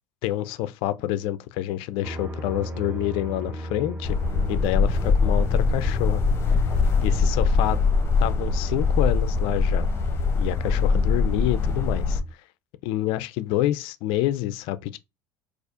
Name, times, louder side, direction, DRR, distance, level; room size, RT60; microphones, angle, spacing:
voice 1, 0.2-4.2 4.5-6.2 7.0-7.8 8.2-9.9 10.3-12.2 12.8-15.0, left 14 dB, 60° left, 0.4 m, -27 dB
sound 1, 2.0-12.3, equal, 15° right, 0.8 m, -37 dB
sound 2, 4.0-12.2, left 4 dB, 25° left, 0.9 m, -22 dB
4.2 x 2.4 x 2.4 m
hypercardioid pair, 75°, 10 cm